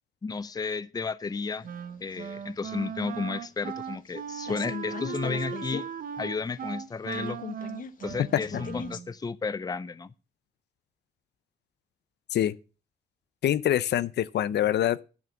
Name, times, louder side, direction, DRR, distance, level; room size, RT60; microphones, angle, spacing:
voice 1, 0.2-1.7 2.0-5.8 6.2-7.4 8.0-10.1, left 4 dB, 20° left, 0.6 m, -33 dB
sound 1, 1.3-4.1 4.4-5.9 6.1-6.2 6.5-9.0, left 6 dB, 50° left, 1.4 m, -40 dB
Wind instrument woodwind instrument, 1.6-9.1, right 8 dB, 55° right, 0.7 m, -38 dB
voice 2, 13.4-15.0, left 11 dB, 75° left, 0.6 m, -25 dB
10.5 x 6.4 x 7.1 m
cardioid pair, 105°, 18 cm